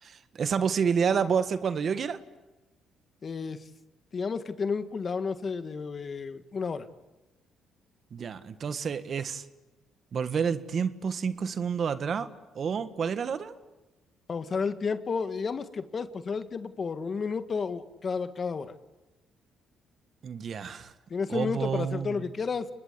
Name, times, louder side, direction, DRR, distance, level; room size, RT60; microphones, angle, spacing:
voice 1, 0.0-2.2 8.1-9.4 10.1-12.3 12.5-13.5 20.2-20.9 21.3-22.3, right 6 dB, 55° right, 11 dB, 1.7 m, -29 dB
voice 2, 3.2-3.6 4.1-6.9 14.3-18.7 21.1-22.7, left 5 dB, 45° left, 10 dB, 1.8 m, -32 dB
29.0 x 21.0 x 8.5 m, 1.1 s
supercardioid pair, 75°, 0 cm